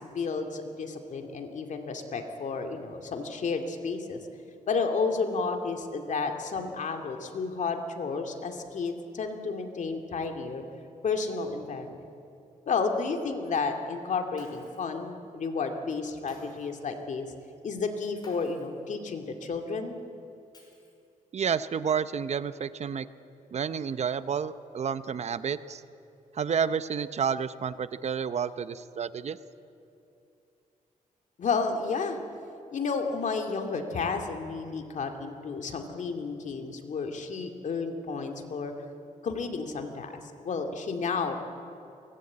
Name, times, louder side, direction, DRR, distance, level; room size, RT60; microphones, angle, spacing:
voice 1, 0.0-4.2 4.7-10.6 11.0-12.0 12.7-17.3 17.6-20.0 31.4-32.2 32.7-38.7 39.2-40.2 40.4-41.4, left 4 dB, 60° left, 5 dB, 2.4 m, -31 dB
Shatter, 14.4-15.0 16.3-16.8 18.2-18.8 20.5-21.2, left 1 dB, 30° left, 5.9 m, -52 dB
voice 2, 21.3-23.1 23.5-25.8 26.3-29.4, right 7 dB, 50° right, 14 dB, 0.7 m, -30 dB
23.0 x 18.0 x 8.6 m, 2.7 s
cardioid pair, 110°, 14 cm